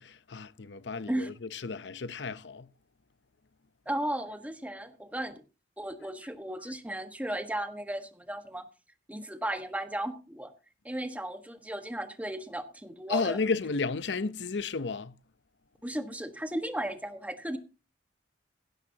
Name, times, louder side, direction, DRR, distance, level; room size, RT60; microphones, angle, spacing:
voice 1, 0.0-2.7 13.1-15.1, left 4 dB, 70° left, 0.7 m, -33 dB
voice 2, 3.9-5.4 5.8-8.7 9.1-10.5 10.8-13.4 15.8-17.6, right 1 dB, 10° right, 1.3 m, -35 dB
16.0 x 12.0 x 2.8 m
head